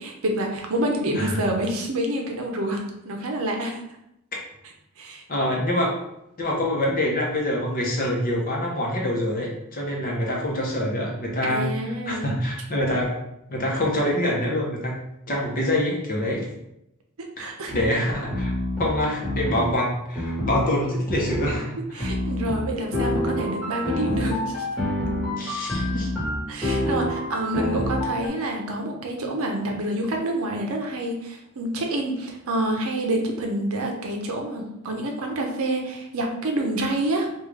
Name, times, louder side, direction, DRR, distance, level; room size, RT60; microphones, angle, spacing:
voice 1, 0.0-3.8 5.0-5.2 11.4-12.3 17.2-17.7 21.9-24.6 26.5-37.3, right 1 dB, 70° right, 2 dB, 0.6 m, -27 dB
voice 2, 5.3-6.0 6.4-11.7 12.1-13.1 13.5-15.0 15.3-16.5 17.4-17.5 17.7-18.5 18.8-22.0 25.4-26.1, left 1 dB, 40° left, -2 dB, 0.7 m, -25 dB
sound 1, 17.7-17.9 18.3-19.7 20.1-20.6 21.1-21.5 22.0-28.3, left 1 dB, ahead, 1.1 m, -27 dB
3.6 x 2.3 x 3.2 m, 0.83 s
head